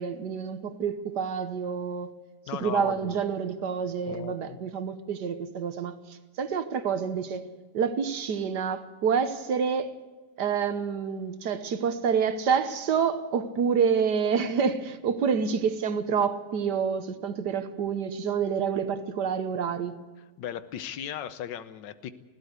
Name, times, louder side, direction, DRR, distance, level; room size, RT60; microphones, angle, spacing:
voice 1, 0.0-2.1 2.6-7.5 7.7-10.0 10.4-20.0, right 6 dB, 70° right, 1.6 m, -28 dB
voice 2, 2.5-3.2 4.1-4.6 20.4-22.1, left 9 dB, 90° left, 1.5 m, -37 dB
20.5 x 16.0 x 8.2 m
omnidirectional pair, 1.9 m